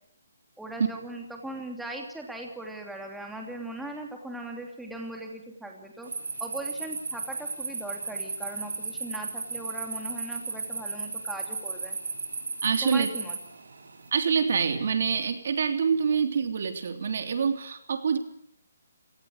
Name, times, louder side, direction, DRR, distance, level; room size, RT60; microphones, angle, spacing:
voice 1, 0.6-6.1 6.4-12.0 12.8-13.4, right 1 dB, ahead, 1 dB, 2.8 m, -39 dB
sound 1, 6.0-14.1, right 4 dB, 75° right, 5.9 m, -35 dB
voice 2, 12.6-13.1 14.1-18.2, right 6 dB, 55° right, 7 dB, 3.2 m, -26 dB
27.0 x 18.5 x 6.6 m, 0.73 s
hypercardioid pair, 165°, 0 cm